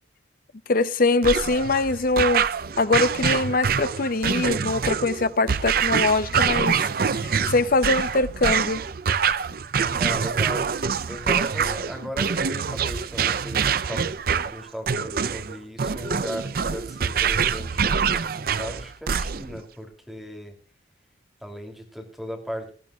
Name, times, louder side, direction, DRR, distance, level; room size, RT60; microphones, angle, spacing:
voice 1, 0.7-2.5 2.8-8.8, left 3 dB, 50° left, 0.7 m, -23 dB
sound 1, 1.2-19.6, right 6 dB, 55° right, 0.6 m, -25 dB
voice 2, 7.3-7.7 9.9-20.5 21.4-22.7, equal, ahead, 2.9 m, -37 dB
19.0 x 13.5 x 2.4 m
head